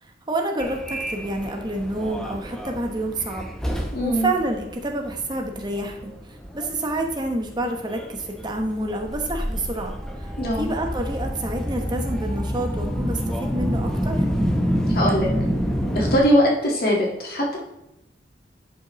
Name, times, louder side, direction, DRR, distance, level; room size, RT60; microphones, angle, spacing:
voice 1, 0.0-14.2, right 1 dB, 25° right, 3 dB, 1.0 m, -28 dB
Subway metro underground, 0.6-16.2, equal, 5° left, 0.8 m, -28 dB
voice 2, 3.9-4.3 10.4-10.7 14.9-15.3 15.9-17.6, equal, 55° left, -3 dB, 1.8 m, -21 dB
11.0 x 5.4 x 3.1 m, 0.89 s
head